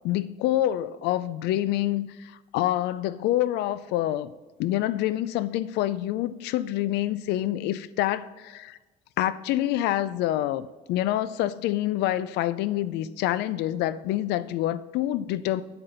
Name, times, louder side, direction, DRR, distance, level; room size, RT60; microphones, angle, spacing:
voice 1, 0.0-4.3 4.6-8.8 9.2-15.6, left 13 dB, 85° left, 17 dB, 0.4 m, -27 dB
9.0 x 7.8 x 4.0 m, 1.2 s
cardioid pair, 110°, 17 cm